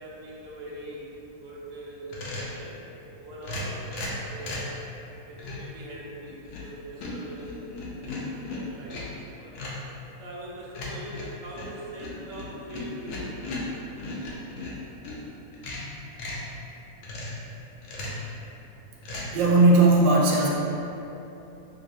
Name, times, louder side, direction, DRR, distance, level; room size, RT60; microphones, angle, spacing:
voice 1, 0.0-2.8 3.2-4.6 5.2-9.5 10.2-13.9, right 1 dB, 60° right, -6 dB, 0.8 m, -42 dB
sound 1, 2.1-2.6 3.4-4.7 5.4-5.7 6.2-6.7 7.0-9.2 9.6-9.9 10.7-15.2 15.5-16.5 17.0-17.4 17.8-18.3 19.0-19.3, left 2 dB, 75° left, 1.3 m, -36 dB
voice 2, 19.1-20.5, right 2 dB, 85° right, -3 dB, 1.3 m, -18 dB
5.9 x 2.0 x 2.6 m, 2.9 s
omnidirectional pair, 2.0 m